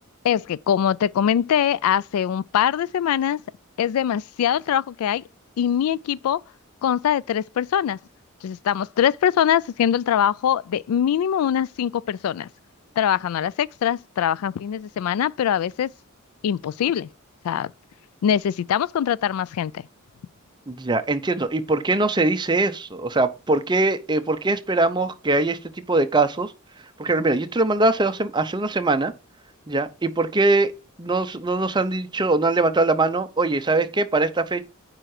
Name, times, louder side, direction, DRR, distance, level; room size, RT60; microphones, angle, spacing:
voice 1, 0.2-3.4 3.8-5.2 5.6-6.4 6.8-8.0 8.4-12.5 13.0-15.9 16.4-17.1 17.4-17.7 18.2-19.8, left 9 dB, 90° left, 0.3 m, -22 dB
voice 2, 20.7-25.6 25.9-26.5 27.0-29.1 29.7-30.7 31.0-34.6, right 2 dB, 20° right, 0.6 m, -22 dB
9.1 x 3.8 x 4.8 m
head